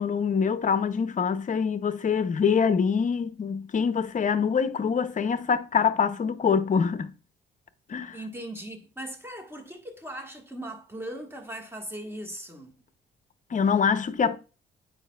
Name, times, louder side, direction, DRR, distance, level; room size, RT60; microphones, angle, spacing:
voice 1, 0.0-7.1 7.9-8.2 13.5-14.4, left 6 dB, 40° left, 0.7 m, -25 dB
voice 2, 8.1-12.7, right 1 dB, 10° right, 1.5 m, -39 dB
8.9 x 5.1 x 2.3 m
cardioid pair, 90°, 20 cm